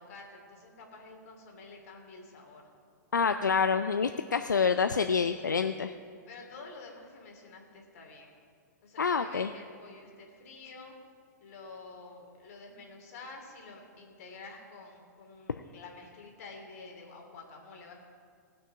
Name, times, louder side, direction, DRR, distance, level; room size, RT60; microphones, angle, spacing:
voice 1, 0.0-2.6 6.3-8.3 8.8-10.9 11.4-17.9, left 3 dB, 55° left, 2 dB, 2.8 m, -49 dB
voice 2, 3.1-5.9 9.0-9.5, left 5 dB, 80° left, 9 dB, 0.4 m, -27 dB
18.5 x 6.3 x 5.7 m, 2.2 s
figure-of-eight pair, 110°, 10 cm